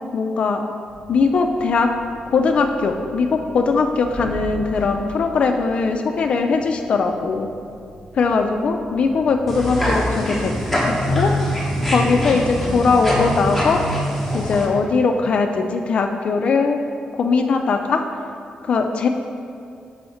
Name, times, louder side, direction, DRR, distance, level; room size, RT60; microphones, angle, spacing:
voice 1, 0.1-0.6 1.1-1.9 2.3-3.3 3.5-7.5 8.2-10.5 10.9-11.3 11.9-13.8 14.3-16.8 17.1-18.0 18.6-19.1, left 4 dB, 45° left, 5 dB, 0.3 m, -20 dB
sound 1, 0.9-10.2, equal, 35° right, 1.2 m, -40 dB
sound 2, 9.5-14.6, equal, 5° left, 1.0 m, -23 dB
5.6 x 5.5 x 4.3 m, 2.4 s
wide cardioid pair, 170°, 3 cm